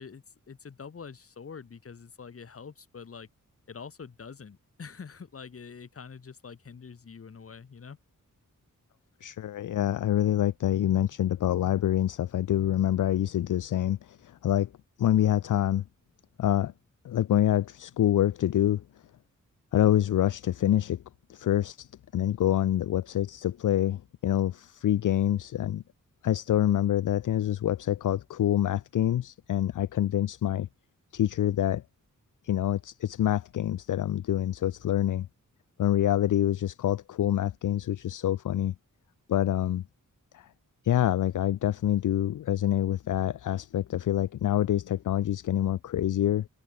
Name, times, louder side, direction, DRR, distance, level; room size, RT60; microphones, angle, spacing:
voice 1, 0.0-3.3 3.7-8.0, left 6 dB, 45° left, 1.2 m, -45 dB
voice 2, 9.2-14.7 15.0-15.8 16.4-16.7 17.0-18.8 19.7-21.0 21.3-25.8 26.2-30.7 31.1-31.8 32.4-35.3 35.8-38.7 39.3-39.8 40.3-40.5 40.8-46.5, left 11 dB, 65° left, 0.5 m, -26 dB
wide cardioid pair, 110°, 33 cm